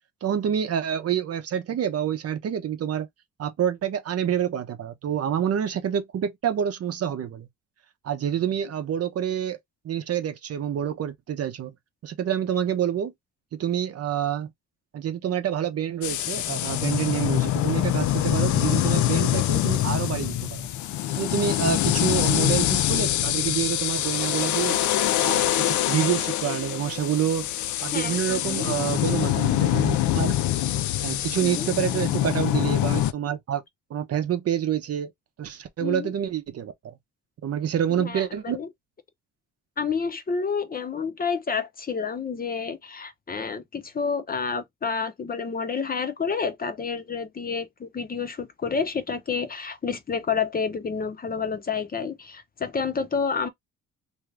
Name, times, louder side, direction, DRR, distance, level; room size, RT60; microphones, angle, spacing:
voice 1, 0.2-3.1 3.4-7.5 8.0-9.6 9.8-11.7 12.0-13.1 13.5-14.5 14.9-20.6 21.2-24.8 25.2-27.5 27.8-30.4 31.0-33.6 33.9-35.1 35.4-36.7 37.4-38.6, right 9 dB, 55° right, 0.7 m, -27 dB
sound 1, 16.0-33.1, left 13 dB, 75° left, 0.5 m, -24 dB
voice 2, 27.9-28.8 31.4-31.7 35.8-36.1 37.9-38.7 39.8-53.5, left 5 dB, 30° left, 0.7 m, -29 dB
2.7 x 2.4 x 3.2 m
cardioid pair, 90°, 30 cm